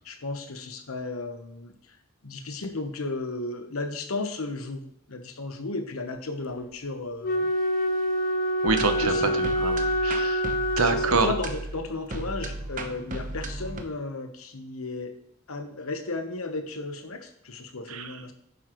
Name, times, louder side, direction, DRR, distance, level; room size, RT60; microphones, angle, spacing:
voice 1, 0.0-2.0 2.2-4.8 5.1-7.5 9.0-9.4 10.8-15.1 15.5-18.3, left 3 dB, 85° left, 6 dB, 1.1 m, -34 dB
Wind instrument woodwind instrument, 7.2-11.6, equal, 45° left, 0.6 m, -26 dB
voice 2, 8.6-10.4 10.8-11.3 17.9-18.1, right 4 dB, 85° right, 8 dB, 0.9 m, -26 dB
sound 1, 8.7-13.8, right 2 dB, 40° right, 0.9 m, -35 dB
9.9 x 7.6 x 3.1 m, 0.73 s
head